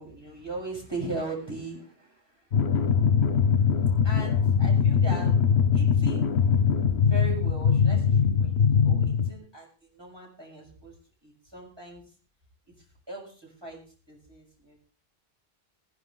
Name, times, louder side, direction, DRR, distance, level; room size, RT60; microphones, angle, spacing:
voice 1, 0.0-2.4 4.0-5.4 5.7-6.3 7.0-10.9 11.2-12.0 13.1-13.8 14.1-14.8, right 2 dB, 25° right, -2 dB, 6.9 m, -39 dB
sound 1, 2.5-9.3, left 6 dB, 75° left, 1.1 m, -22 dB
20.0 x 11.0 x 3.9 m, 0.37 s
omnidirectional pair, 1.1 m